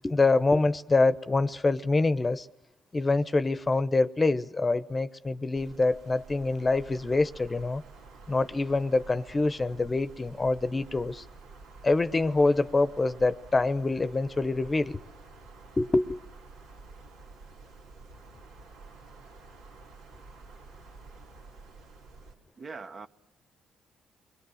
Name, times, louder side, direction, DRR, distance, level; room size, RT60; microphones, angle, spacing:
voice 1, 0.0-2.5 2.9-7.8 8.3-11.2 11.8-15.0 15.8-16.2, left 3 dB, 25° left, 0.9 m, -25 dB
Wind, 5.6-22.3, right 3 dB, 90° right, 3.2 m, -50 dB
voice 2, 22.6-23.1, right 4 dB, 45° right, 1.1 m, -41 dB
28.0 x 22.0 x 6.5 m
supercardioid pair, 70°, 0 cm